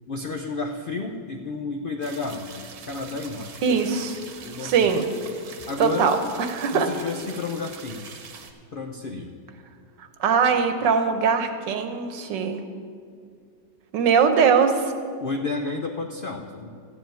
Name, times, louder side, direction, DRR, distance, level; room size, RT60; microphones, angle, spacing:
voice 1, 0.1-3.6 4.4-4.9 5.6-6.2 6.7-8.3 8.7-9.3 15.2-16.7, left 3 dB, 75° left, 3 dB, 0.5 m, -31 dB
sound 1, 2.0-8.5, right 6 dB, 65° right, 1.4 m, -43 dB
voice 2, 3.6-4.2 4.6-5.0 5.8-6.9 10.0-12.6 13.9-14.9, right 6 dB, 85° right, 7 dB, 1.6 m, -21 dB
13.5 x 4.8 x 9.1 m, 2.2 s
omnidirectional pair, 1.9 m